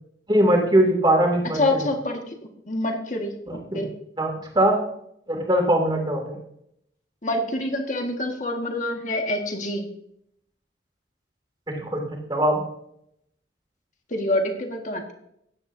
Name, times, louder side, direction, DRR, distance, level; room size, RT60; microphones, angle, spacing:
voice 1, 0.3-1.8 3.5-3.8 4.2-4.7 5.3-6.4 11.7-12.0 12.3-12.6, right 1 dB, 25° right, 1 dB, 2.5 m, -21 dB
voice 2, 1.6-2.2 2.7-3.9 7.2-9.8 14.1-15.1, left 1 dB, 40° left, 3 dB, 1.7 m, -26 dB
16.0 x 10.5 x 2.7 m, 0.73 s
head